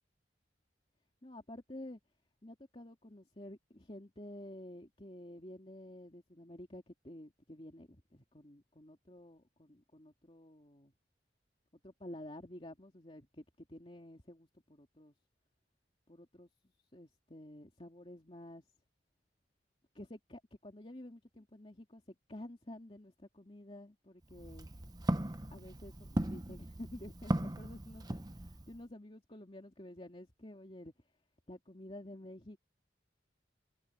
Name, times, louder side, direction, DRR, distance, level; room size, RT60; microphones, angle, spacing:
voice 1, 1.2-2.0 2.4-10.9 11.8-15.1 16.1-16.5 16.9-18.6 19.9-22.0 22.3-24.7 25.5-30.9 31.5-32.6, left 1 dB, 30° left, 2.5 m, -51 dB
Walk footsteps, 24.2-28.8, right 1 dB, 20° right, 0.8 m, -38 dB
head